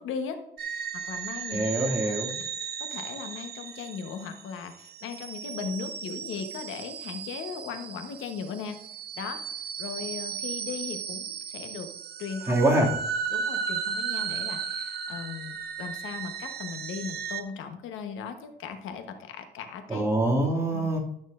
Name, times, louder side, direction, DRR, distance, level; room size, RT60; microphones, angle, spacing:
voice 1, 0.0-1.8 2.8-8.8 9.2-11.9 12.2-12.6 13.3-20.1 20.7-20.9, left 6 dB, 85° left, 7 dB, 1.1 m, -38 dB
sound 1, 0.6-17.4, right 7 dB, 55° right, 0.8 m, -35 dB
voice 2, 1.5-2.3 12.5-12.9 19.9-21.0, right 1 dB, 15° right, -2 dB, 2.4 m, -24 dB
11.5 x 6.2 x 2.5 m, 0.75 s
cardioid pair, 90°, 20 cm